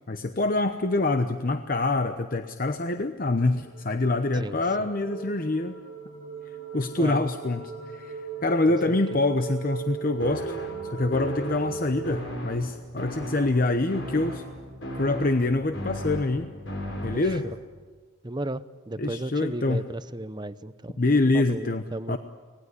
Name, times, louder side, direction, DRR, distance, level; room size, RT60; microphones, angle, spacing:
voice 1, 0.1-5.7 6.7-10.6 10.8-14.4 15.0-16.5 17.0-17.4 19.0-19.8 21.0-22.2, left 2 dB, 45° left, 8 dB, 0.9 m, -25 dB
sound 1, 3.0-12.1, right 7 dB, 85° left, 5.7 m, -38 dB
voice 2, 4.3-4.9 7.0-7.2 8.9-9.2 17.1-17.4 18.2-21.0 21.3-22.2, right 1 dB, 20° right, 14 dB, 0.7 m, -35 dB
sound 2, 10.2-17.6, left 1 dB, 65° left, 7.3 m, -36 dB
25.5 x 19.0 x 9.8 m, 1.5 s
head